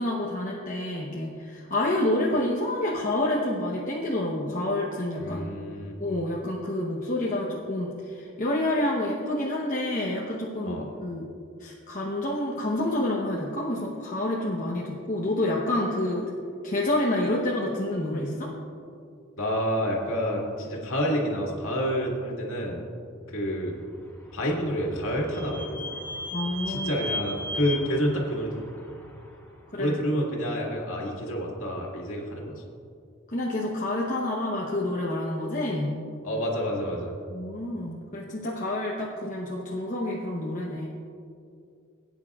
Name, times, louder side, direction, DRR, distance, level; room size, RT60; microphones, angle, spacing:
voice 1, 0.0-5.5 6.0-11.3 11.6-16.3 16.6-18.5 26.3-26.9 29.7-29.9 33.3-36.0 37.3-40.9, left 1 dB, 40° left, -4 dB, 0.9 m, -28 dB
voice 2, 5.2-5.9 10.6-10.9 19.4-22.8 23.3-23.8 24.3-25.9 26.7-28.6 29.8-32.6 36.2-37.2, equal, 75° left, -2 dB, 2.0 m, -28 dB
Vehicle / Squeak, 23.9-29.5, left 1 dB, 15° left, 1.7 m, -37 dB
18.5 x 9.1 x 2.4 m, 2.4 s
head